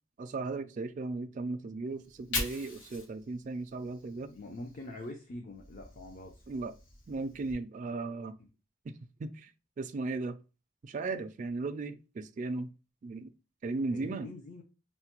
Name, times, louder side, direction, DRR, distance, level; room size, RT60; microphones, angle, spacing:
voice 1, 0.2-4.3 6.5-6.7 7.1-8.4 8.9-9.0 9.2-9.5 9.8-10.4 10.8-12.7 13.0-13.3 13.6-14.3, right 3 dB, 40° right, 0.3 m, -36 dB
Fire, 1.9-5.1 5.5-7.5, left 3 dB, 85° left, 1.0 m, -42 dB
voice 2, 4.2-6.4 13.9-14.6, left 1 dB, 45° left, 0.6 m, -44 dB
5.6 x 2.1 x 2.9 m
head